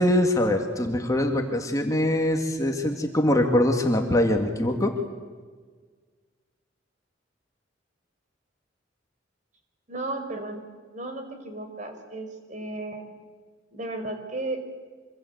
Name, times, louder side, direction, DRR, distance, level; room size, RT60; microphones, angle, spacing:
voice 1, 0.0-4.9, left 1 dB, 20° left, 3 dB, 2.2 m, -23 dB
voice 2, 9.9-10.6 10.9-13.1 13.7-14.6, right 2 dB, 40° right, 5 dB, 4.7 m, -34 dB
26.0 x 24.5 x 8.1 m, 1.5 s
head